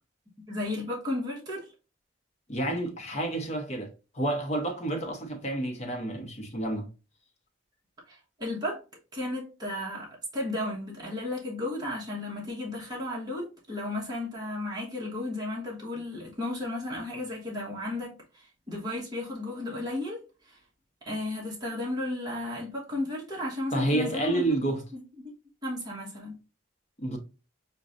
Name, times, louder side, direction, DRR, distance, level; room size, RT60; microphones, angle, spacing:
voice 1, 0.5-1.7 8.1-8.8 9.1-20.6 21.0-24.5 24.9-25.3 25.6-26.4, left 1 dB, 20° right, 1.2 m, -34 dB
voice 2, 2.5-6.9 23.7-24.8 27.0-27.2, right 1 dB, 35° left, 0.8 m, -29 dB
6.1 x 2.3 x 2.5 m
head